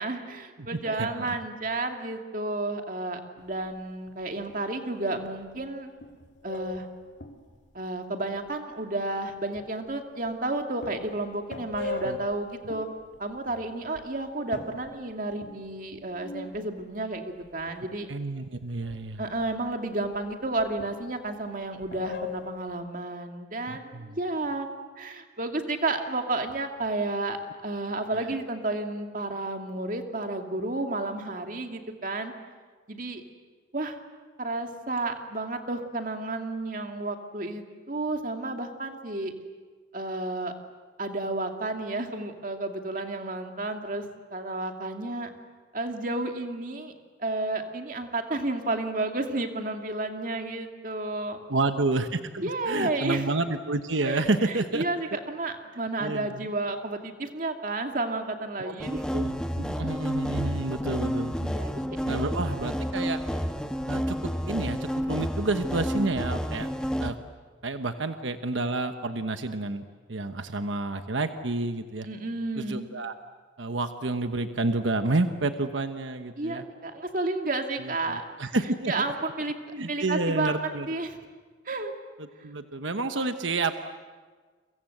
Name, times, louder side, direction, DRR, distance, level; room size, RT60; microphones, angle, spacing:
voice 1, 0.0-5.9 6.4-6.9 7.7-12.9 13.2-18.1 19.2-24.7 25.0-27.4 27.6-32.3 32.9-33.2 33.7-34.0 34.4-39.3 39.9-40.5 41.0-45.3 45.7-46.9 47.2-51.4 52.4-53.2 54.0-59.0 61.4-62.7 72.0-72.9 76.4-78.2 78.9-79.6 79.9-81.2 81.7-81.9, right 2 dB, 45° right, 4 dB, 2.4 m, -31 dB
voice 2, 0.7-1.3 12.0-12.2 18.1-19.2 23.7-24.1 28.1-28.3 51.5-54.8 56.0-56.5 58.6-58.8 59.1-61.4 62.0-63.2 63.9-66.7 67.0-67.1 67.6-72.1 72.6-73.1 73.6-76.6 77.8-78.9 79.7-80.9 82.2-83.7, right 2 dB, 90° right, 8 dB, 1.2 m, -30 dB
sound 1, 3.4-4.1 4.5-4.7 5.2-5.7 6.0-7.7 8.3-8.5 9.3-9.9 10.2-10.5 10.8-14.0 14.5-17.1 17.4-18.2 18.8-19.7 20.0-21.5 21.8-22.7, left 4 dB, 65° left, 2.9 m, -41 dB
sound 2, 58.8-67.1, equal, 5° left, 1.4 m, -30 dB
30.0 x 24.0 x 7.9 m, 1.5 s
head